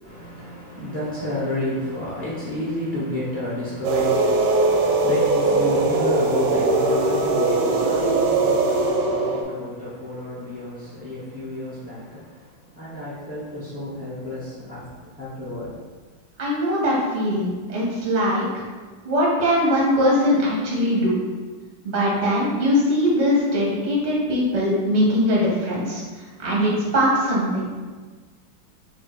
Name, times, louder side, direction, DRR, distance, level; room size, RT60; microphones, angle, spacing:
voice 1, 0.0-15.8, left 1 dB, 45° left, -9 dB, 0.5 m, -31 dB
sound 1, 3.8-9.4, right 3 dB, 80° right, 1.3 m, -20 dB
voice 2, 16.4-18.6 19.0-21.2 21.8-26.0 26.4-27.7, equal, 45° right, -5 dB, 0.5 m, -21 dB
3.5 x 2.4 x 4.3 m, 1.4 s
omnidirectional pair, 2.2 m